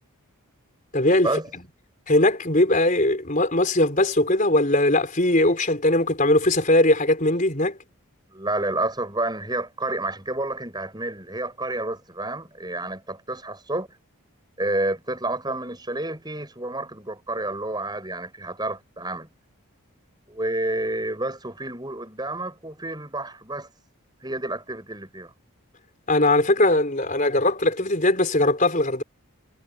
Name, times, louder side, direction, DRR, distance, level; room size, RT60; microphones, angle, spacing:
voice 1, 0.9-1.3 2.1-7.8 26.1-29.0, left 1 dB, 35° left, 4.7 m, -20 dB
voice 2, 8.3-13.9 14.6-19.3 20.3-23.7 24.2-25.3, right 2 dB, 20° right, 7.5 m, -29 dB
head